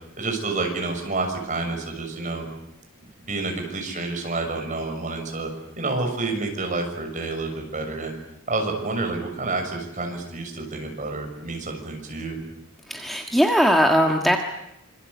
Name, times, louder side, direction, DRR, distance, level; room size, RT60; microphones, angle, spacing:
voice 1, 0.2-2.5 3.2-5.5 5.8-8.1 8.5-12.4, right 3 dB, 35° right, 3 dB, 6.5 m, -29 dB
voice 2, 12.9-14.4, equal, ahead, 3 dB, 1.6 m, -19 dB
26.5 x 26.0 x 8.3 m, 0.82 s
head